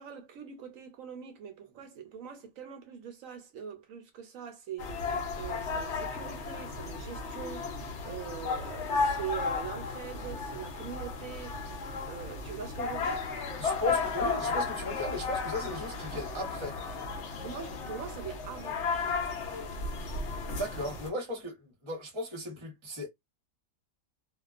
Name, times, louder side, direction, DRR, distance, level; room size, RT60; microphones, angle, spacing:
voice 1, 0.0-11.7 12.1-13.3 17.4-18.8, right 8 dB, 75° right, 1.0 m, -43 dB
sound 1, 4.8-21.1, left 4 dB, 60° left, 0.9 m, -34 dB
voice 2, 13.6-16.8 20.5-23.1, left 1 dB, 25° right, 0.8 m, -36 dB
2.4 x 2.3 x 2.4 m
omnidirectional pair, 1.5 m